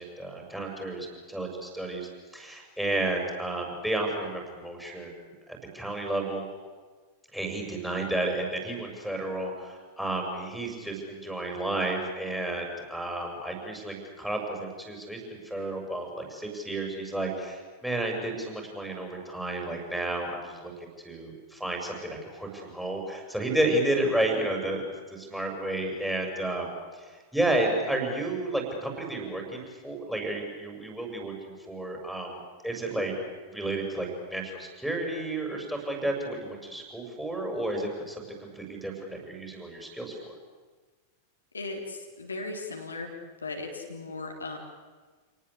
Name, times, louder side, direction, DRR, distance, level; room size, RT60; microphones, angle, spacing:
voice 1, 0.0-6.5 7.3-33.2 33.5-40.3, right 1 dB, ahead, 1 dB, 7.1 m, -32 dB
voice 2, 41.5-43.2 43.4-44.6, left 3 dB, 75° left, 2 dB, 3.7 m, -37 dB
28.5 x 19.0 x 8.5 m, 1.4 s
figure-of-eight pair, 90°, 0 cm